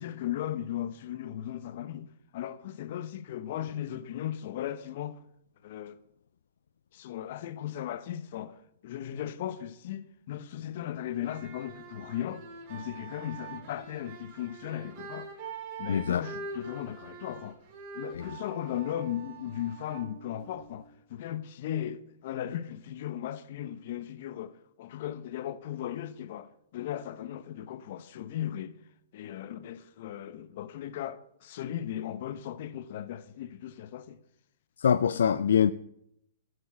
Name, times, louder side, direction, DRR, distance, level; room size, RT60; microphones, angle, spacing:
voice 1, 0.0-5.2 5.6-6.0 6.9-8.6 8.8-12.4 12.7-15.3 15.8-17.6 17.9-24.5 24.8-28.7 29.1-34.2, left 11 dB, 55° left, 1.0 m, -37 dB
sound 1, 11.1-20.9, right 4 dB, 45° right, 3.7 m, -45 dB
voice 2, 15.9-16.2 18.2-18.3 34.8-35.7, left 8 dB, 80° left, 0.4 m, -24 dB
13.5 x 8.1 x 7.1 m
hypercardioid pair, 130°, 0 cm